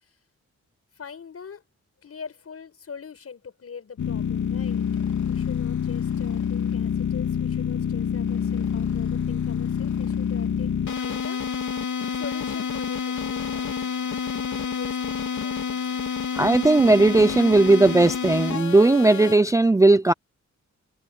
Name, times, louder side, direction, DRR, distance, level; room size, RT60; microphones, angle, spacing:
voice 1, 1.0-1.6 2.0-4.9 5.3-10.7 11.0-11.4 12.1-13.9 14.5-16.1, left 6 dB, 55° left, 6.7 m, -42 dB
sound 1, 4.0-19.3, left 7 dB, 85° left, 3.6 m, -27 dB
voice 2, 16.3-20.1, right 2 dB, 10° right, 0.4 m, -17 dB
wide cardioid pair, 140°, 29 cm